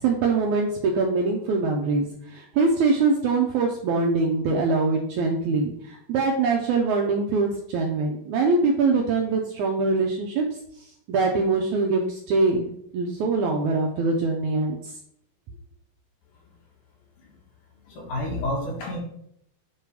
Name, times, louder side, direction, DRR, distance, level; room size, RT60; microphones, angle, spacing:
voice 1, 0.0-10.4 10.8-14.9, right 3 dB, 75° right, 1 dB, 1.8 m, -23 dB
voice 2, 17.9-19.0, left 1 dB, 65° left, -2 dB, 2.8 m, -29 dB
8.4 x 3.3 x 4.7 m, 0.71 s
omnidirectional pair, 4.1 m